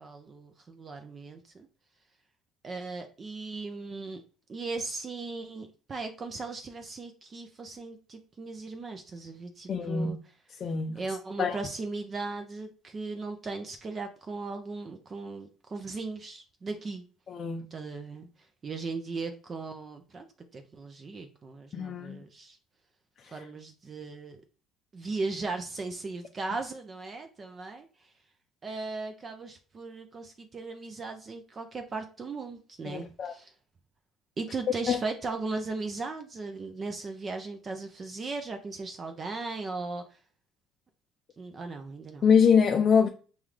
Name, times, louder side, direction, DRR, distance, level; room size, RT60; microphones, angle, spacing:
voice 1, 0.0-1.7 2.6-4.2 4.5-10.2 10.9-17.0 17.7-18.3 18.6-20.3 20.5-22.6 23.3-24.4 24.9-28.1 28.6-33.5 34.4-40.2 41.4-42.3, right 3 dB, 30° right, 0.6 m, -37 dB
voice 2, 9.7-10.1 10.6-11.0 11.4-11.6 17.3-17.7 21.7-22.2 23.2-23.3 32.9-33.3 34.9-35.0 42.2-43.1, left 6 dB, 40° left, 0.5 m, -24 dB
5.4 x 2.4 x 3.2 m
cardioid pair, 110°, 0 cm